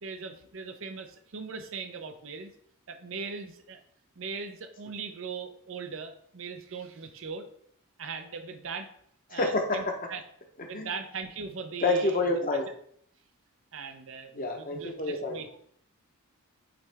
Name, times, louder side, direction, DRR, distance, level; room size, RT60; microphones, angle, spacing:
voice 1, 0.0-2.5 2.9-3.8 4.2-7.4 8.0-8.9 9.3-10.2 10.6-12.6 13.7-15.5, right 5 dB, 60° right, 7 dB, 0.6 m, -40 dB
voice 2, 9.3-9.9 10.7-10.9 11.8-12.7 14.3-15.6, left 2 dB, 40° left, 2 dB, 0.9 m, -28 dB
8.7 x 3.2 x 3.4 m, 0.66 s
head